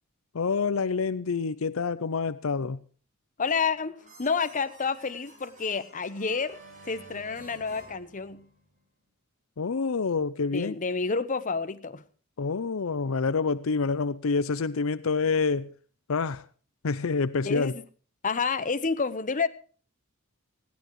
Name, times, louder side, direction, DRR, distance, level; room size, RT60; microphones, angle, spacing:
voice 1, 0.3-2.8 9.6-10.8 12.4-15.7 16.1-16.4 16.8-17.7, left 4 dB, 75° left, 0.6 m, -27 dB
voice 2, 3.4-6.6 6.9-8.4 10.5-12.0 17.4-17.8 18.2-19.5, left 5 dB, 40° left, 1.0 m, -29 dB
sound 1, 3.5-8.8, right 2 dB, 35° right, 6.4 m, -52 dB
20.0 x 15.5 x 3.1 m
head